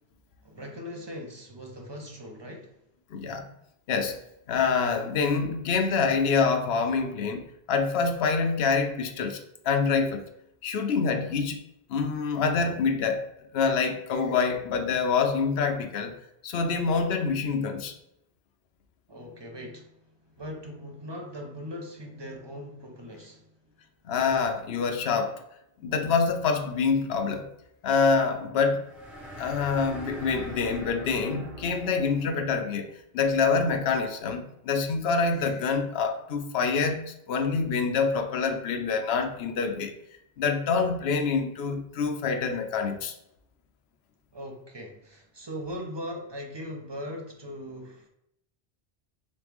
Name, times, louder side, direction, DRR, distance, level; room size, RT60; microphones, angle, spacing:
voice 1, 0.4-2.8 19.1-23.5 44.3-48.1, equal, 35° right, 0.5 m, -40 dB
voice 2, 3.1-3.5 3.9-4.2 4.5-10.2 10.6-11.6 11.9-13.2 13.5-16.1 16.4-17.9 24.0-25.4 25.8-27.5 27.8-28.8 29.4-39.9 40.4-43.1, left 5 dB, 80° left, 0.8 m, -26 dB
sound 1, 28.8-32.6, right 1 dB, ahead, 0.9 m, -42 dB
3.4 x 3.1 x 3.4 m
omnidirectional pair, 1.0 m